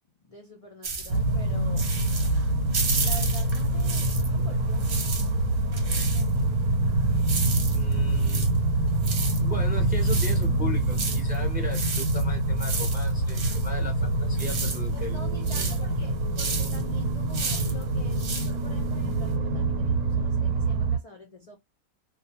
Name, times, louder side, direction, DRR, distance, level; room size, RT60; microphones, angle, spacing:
voice 1, 0.2-1.9 3.0-5.0 5.7-6.6 14.9-21.6, left 2 dB, 70° left, 0.3 m, -46 dB
sound 1, 0.8-4.4 4.7-19.3, right 4 dB, 50° right, 0.8 m, -34 dB
sound 2, 1.1-21.0, right 2 dB, 85° right, 1.1 m, -25 dB
voice 2, 7.7-8.6 9.4-15.2 15.5-15.7, left 2 dB, 15° right, 0.3 m, -37 dB
2.4 x 2.2 x 2.7 m
omnidirectional pair, 1.5 m